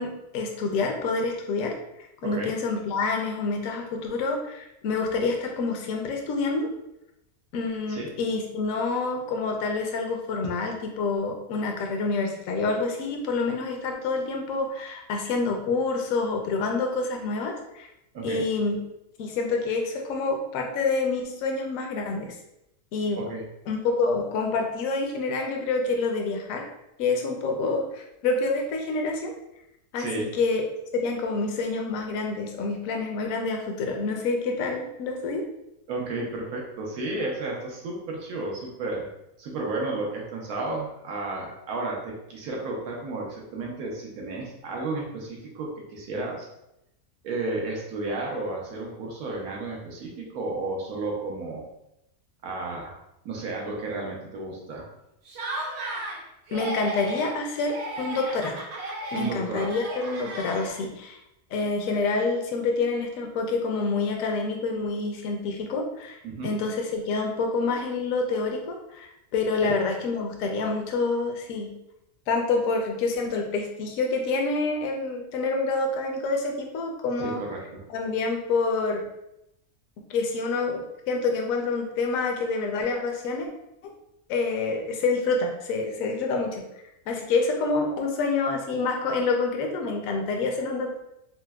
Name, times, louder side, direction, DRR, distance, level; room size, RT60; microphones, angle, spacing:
voice 1, 0.0-6.7 7.5-17.9 18.2-18.8 19.2-22.3 22.9-23.2 23.7-26.6 27.0-29.3 29.9-30.6 30.9-35.4 56.5-58.6 59.1-61.2 61.5-66.2 66.4-71.7 72.3-77.4 77.9-79.0 80.1-83.5 84.3-86.6 87.1-91.0, left 3 dB, 70° left, 2 dB, 0.9 m, -27 dB
voice 2, 30.0-30.3 35.9-39.1 39.4-46.5 47.2-51.6 52.4-53.0 53.2-54.9 59.1-59.7 66.2-66.5 69.6-69.7 77.2-77.8, right 2 dB, 85° right, -1 dB, 1.3 m, -32 dB
Laughter, 55.3-56.2 56.5-57.4 57.7-61.0, right 1 dB, 60° right, 0.8 m, -35 dB
4.4 x 2.0 x 2.2 m, 0.85 s
omnidirectional pair, 1.5 m